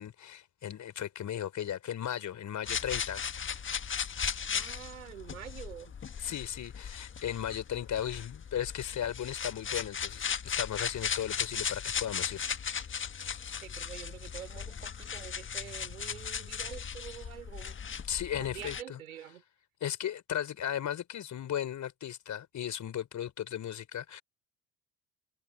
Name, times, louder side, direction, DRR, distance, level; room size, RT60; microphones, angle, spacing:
voice 1, 0.0-3.2 6.2-12.4 18.1-19.0 19.8-24.2, left 10 dB, 45° left, 4.9 m, -36 dB
sound 1, 2.6-18.8, left 7 dB, 30° left, 1.6 m, -37 dB
voice 2, 4.5-5.9 13.6-17.8 18.3-19.4, right 10 dB, 80° right, 4.8 m, -46 dB
figure-of-eight pair, 60°, 42 cm